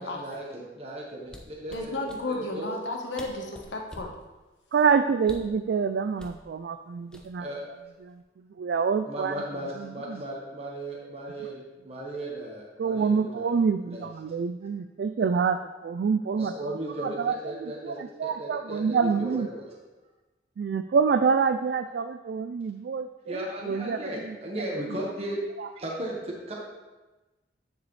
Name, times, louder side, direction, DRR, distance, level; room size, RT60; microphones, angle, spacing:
voice 1, 0.0-2.8 7.4-7.6 9.1-13.5 13.9-14.1 16.4-19.6 23.3-25.4 25.7-26.5, right 1 dB, 35° right, -3 dB, 1.3 m, -36 dB
sound 1, 1.2-2.2 2.9-3.0 3.2-4.2 5.2-5.6 6.2-6.4 7.1-7.6 7.9-8.2, equal, 5° left, 0.6 m, -45 dB
voice 2, 1.7-4.1, left 2 dB, 85° left, 1 dB, 1.2 m, -33 dB
voice 3, 4.7-7.5 8.0-8.2 8.6-9.4 9.8-10.2 12.8-16.7 17.0-19.5 20.6-24.4 25.6-25.7, right 5 dB, 65° right, 9 dB, 0.3 m, -27 dB
9.7 x 6.8 x 3.2 m, 1.2 s
head